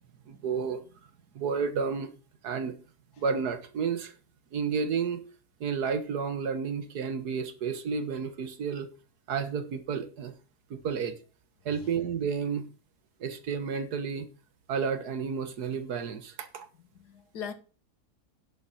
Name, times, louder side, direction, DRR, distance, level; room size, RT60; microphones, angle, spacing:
voice 1, 0.3-0.8 1.4-2.1 2.4-2.8 3.2-4.1 4.5-5.2 5.6-8.9 9.3-10.3 10.7-11.2 11.7-12.7 13.2-14.3 14.7-16.7, right 6 dB, 75° right, 1.8 m, -31 dB
voice 2, 16.8-17.5, left 7 dB, 80° left, 1.9 m, -40 dB
10.5 x 7.2 x 5.6 m
omnidirectional pair, 1.7 m